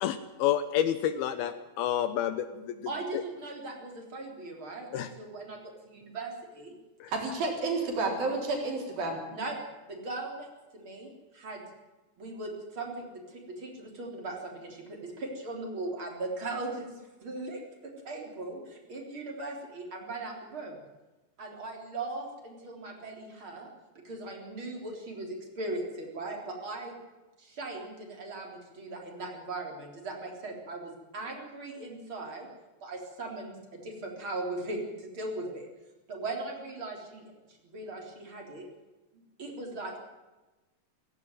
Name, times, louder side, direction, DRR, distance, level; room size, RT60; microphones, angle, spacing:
voice 1, 0.0-2.8 4.9-5.1 7.0-7.1, left 10 dB, 75° left, 11 dB, 2.5 m, -29 dB
voice 2, 2.9-5.6 5.9-6.7 9.3-9.5 9.9-10.5 10.7-11.1 11.3-11.6 12.2-16.9 17.2-17.6 18.0-20.8 21.4-23.7 24.0-26.9 27.4-32.5 32.8-35.7 36.1-37.3 37.6-38.7 39.1-40.0, right 2 dB, 30° right, 1 dB, 4.0 m, -39 dB
voice 3, 7.1-9.2, right 3 dB, 60° right, 1 dB, 5.5 m, -30 dB
17.0 x 16.5 x 9.2 m, 1.1 s
omnidirectional pair, 4.8 m